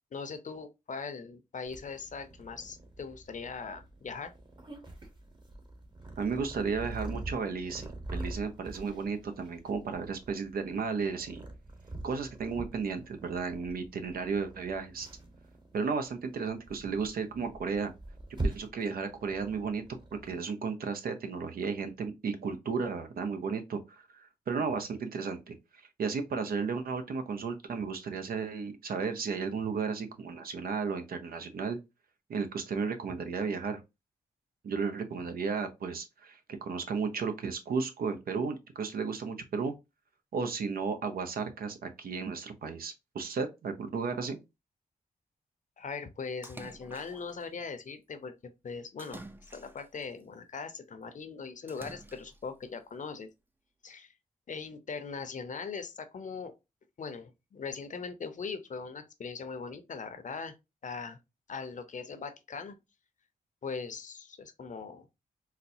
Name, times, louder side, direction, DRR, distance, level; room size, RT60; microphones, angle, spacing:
voice 1, 0.1-4.3 45.8-48.3 48.6-49.2 49.5-53.3 53.8-54.1 54.5-56.5 57.0-60.5 60.8-61.2 61.5-62.7 63.6-65.1, left 5 dB, 55° left, 0.7 m, -40 dB
Purr, 1.7-20.4, right 2 dB, 30° right, 1.1 m, -43 dB
voice 2, 6.2-11.4 12.0-15.1 15.7-17.9 18.4-19.8 20.2-31.8 32.3-33.8 34.6-39.7 40.3-44.4, right 5 dB, 70° right, 0.7 m, -34 dB
Splash splatter, 46.4-47.4 49.0-50.1 51.7-52.5, right 2 dB, 15° right, 0.5 m, -48 dB
4.0 x 2.1 x 2.6 m
cardioid pair, 55°, 16 cm